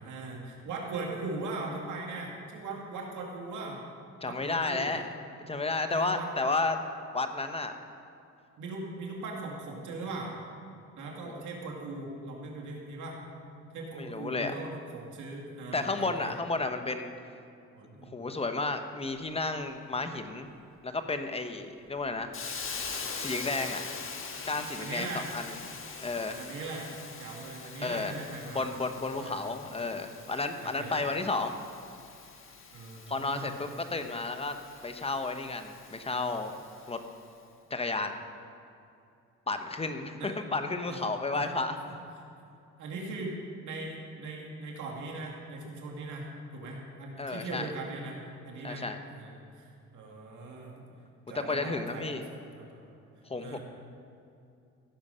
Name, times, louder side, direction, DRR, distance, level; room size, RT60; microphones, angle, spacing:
voice 1, 0.0-3.8 4.2-5.0 5.9-6.3 8.6-10.3 11.0-13.2 13.7-16.3 17.7-18.2 24.8-25.3 26.3-26.9 27.2-28.6 29.2-29.5 30.6-31.0 32.7-33.5 40.2-40.3 40.9-41.0 41.3-41.5 42.8-46.3 46.5-48.2 48.4-50.8 51.3-52.1 52.6-52.9 53.4-53.6, right 3 dB, 80° right, -1 dB, 2.4 m, -40 dB
voice 2, 4.2-5.0 5.5-6.8 7.1-7.7 11.2-11.4 14.0-14.5 15.7-17.1 18.0-20.5 20.8-22.3 23.1-23.8 24.4-25.6 26.0-26.4 27.8-28.1 28.5-31.5 33.1-34.6 34.8-36.5 36.9-37.0 37.7-38.1 39.5-41.8 47.2-47.7 48.6-49.0 51.5-52.3 53.3-53.6, left 3 dB, 20° left, 7 dB, 1.0 m, -32 dB
Hiss, 22.3-37.1, left 4 dB, 45° left, 1.5 m, -43 dB
16.0 x 7.0 x 5.6 m, 2.6 s
cardioid pair, 90°, 30 cm